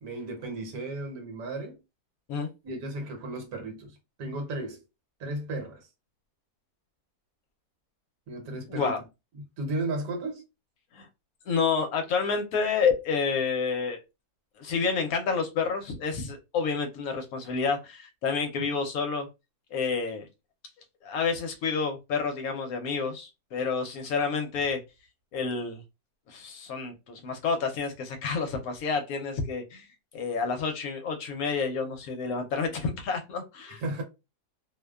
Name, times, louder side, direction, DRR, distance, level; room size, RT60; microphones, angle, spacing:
voice 1, 0.0-1.8 2.6-4.8 5.2-5.9 8.3-9.0 9.3-10.4 18.6-18.7 33.8-34.0, right 2 dB, 70° right, 1.2 m, -34 dB
voice 2, 11.5-14.0 14.6-19.3 19.7-20.3 21.0-24.8 25.3-25.8 26.3-29.9 30.1-34.0, left 5 dB, 70° left, 1.0 m, -29 dB
2.6 x 2.1 x 2.2 m
omnidirectional pair, 1.7 m